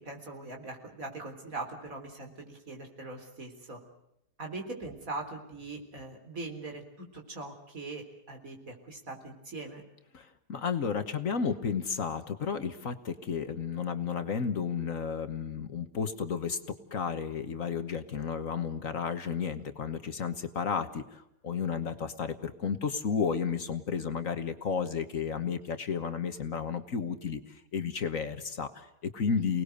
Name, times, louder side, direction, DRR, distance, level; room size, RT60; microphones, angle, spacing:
voice 1, 0.0-3.8 4.4-9.8, right 2 dB, 55° right, 3 dB, 4.3 m, -41 dB
voice 2, 10.1-29.6, left 6 dB, 55° left, 9 dB, 1.6 m, -32 dB
29.5 x 19.5 x 6.6 m, 0.83 s
omnidirectional pair, 1.7 m